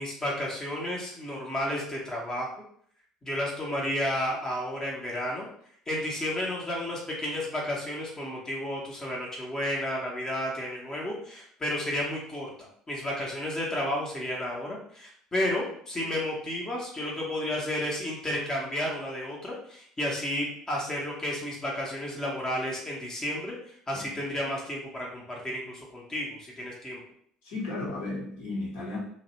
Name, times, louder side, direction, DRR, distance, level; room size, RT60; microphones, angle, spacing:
voice 1, 0.0-2.5 3.2-5.5 5.9-27.0, left 1 dB, 20° left, -3 dB, 0.7 m, -32 dB
voice 2, 27.4-29.0, left 2 dB, 60° left, -4 dB, 1.0 m, -34 dB
2.4 x 2.0 x 2.9 m, 0.63 s
figure-of-eight pair, 60°, 3 cm